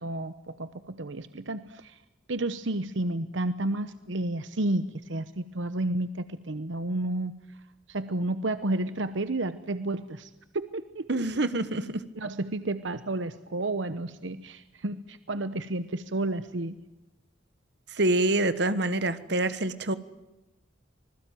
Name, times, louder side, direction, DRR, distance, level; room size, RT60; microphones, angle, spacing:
voice 1, 0.0-2.0 2.3-7.3 7.9-11.1 12.2-16.7, right 2 dB, 80° right, 12 dB, 1.0 m, -31 dB
voice 2, 11.1-12.0 17.9-19.9, right 2 dB, 60° right, 13 dB, 1.4 m, -26 dB
26.0 x 20.5 x 9.3 m, 1.0 s
head